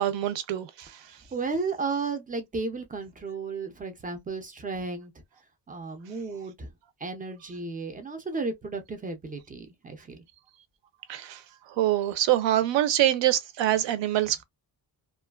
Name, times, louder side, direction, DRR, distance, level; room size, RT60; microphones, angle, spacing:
voice 1, 0.0-0.9 11.1-11.4 11.8-14.4, right 12 dB, 80° right, 0.6 m, -25 dB
voice 2, 1.0-5.1 5.7-6.7 7.0-10.2, right 4 dB, 20° right, 0.3 m, -34 dB
2.4 x 2.3 x 2.2 m
wide cardioid pair, 180°, 44 cm